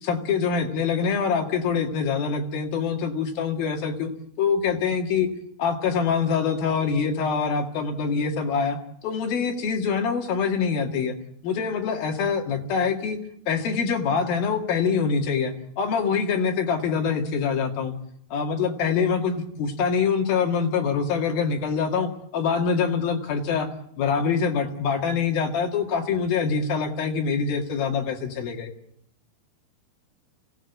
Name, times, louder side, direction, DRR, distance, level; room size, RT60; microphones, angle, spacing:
voice 1, 0.0-4.1 4.4-5.3 5.6-8.8 9.0-11.2 11.4-13.2 13.5-17.9 18.3-23.7 24.0-28.7, left 6 dB, 70° left, 3 dB, 3.8 m, -25 dB
24.5 x 16.5 x 8.1 m, 0.70 s
omnidirectional pair, 4.5 m